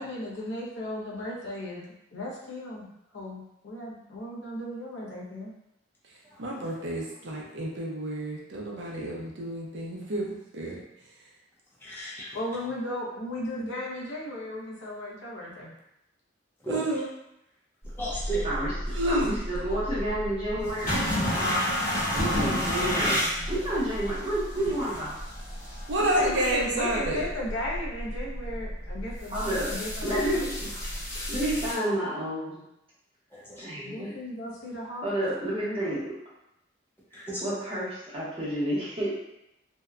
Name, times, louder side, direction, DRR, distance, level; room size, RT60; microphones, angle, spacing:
voice 1, 0.0-1.8 2.1-5.5 12.3-15.8 26.0-29.4 29.7-30.5 33.8-35.1 35.4-35.8, left 1 dB, 80° left, -4 dB, 0.7 m, -35 dB
voice 2, 6.4-10.8 16.7-17.1 18.9-19.4 25.9-27.2, right 1 dB, 65° right, -2 dB, 0.5 m, -29 dB
voice 3, 11.8-12.3 16.6-17.0 17.8-18.5 33.3-33.6 37.1-37.4, right 2 dB, 10° left, -6 dB, 0.5 m, -34 dB
sound 1, 17.8-31.7, equal, 50° left, 0.9 m, -31 dB
voice 4, 19.1-21.8 22.1-23.2 23.5-25.1 29.3-29.7 30.0-30.7 31.3-32.6 33.6-34.1 35.0-36.0 37.1-39.2, right 1 dB, 30° right, -8 dB, 0.9 m, -30 dB
2.7 x 2.1 x 2.3 m, 0.85 s
head